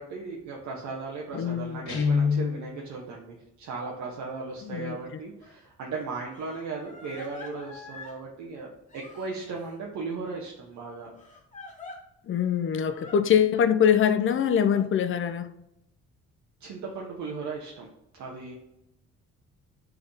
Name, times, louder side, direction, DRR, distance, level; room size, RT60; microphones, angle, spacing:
voice 1, 0.0-8.7 8.9-11.1 16.6-17.9 18.1-18.5, right 4 dB, 70° right, 0.9 m, -37 dB
voice 2, 1.3-1.8 4.6-5.0 12.3-15.5, left 8 dB, 45° left, 0.5 m, -23 dB
Guitar, 1.9-2.7, left 5 dB, 65° left, 1.7 m, -24 dB
Crying sobbing, 5.4-5.5 6.3-8.2 8.9-9.8 11.2-12.0 12.8-13.2 14.2-14.8, left 3 dB, 25° left, 1.4 m, -46 dB
3.5 x 3.4 x 4.0 m
cardioid pair, 90°, 30 cm